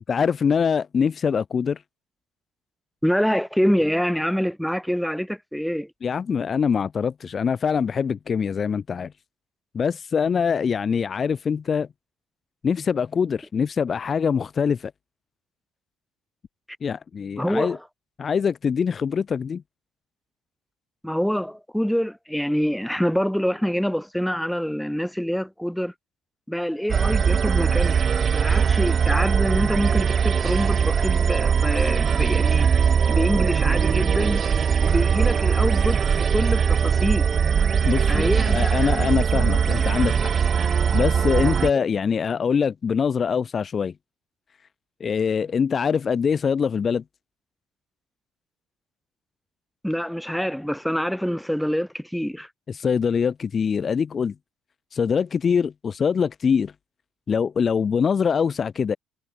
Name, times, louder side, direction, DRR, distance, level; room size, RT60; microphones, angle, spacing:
voice 1, 0.1-1.8 6.0-9.1 9.7-11.9 12.6-14.9 16.8-17.8 18.2-19.6 37.8-40.3 40.9-43.9 45.0-47.0 52.7-54.3 54.9-56.7 57.3-59.0, left 6 dB, 40° left, 2.2 m, -23 dB
voice 2, 3.0-5.9 17.4-17.8 21.0-25.9 26.5-28.0 28.3-32.7 33.1-34.5 34.8-37.3 38.1-38.9 41.8-41.9 49.8-52.5, equal, ahead, 6.9 m, -25 dB
sound 1, 26.9-41.7, right 7 dB, 40° right, 3.3 m, -20 dB
hypercardioid pair, 65°, 0 cm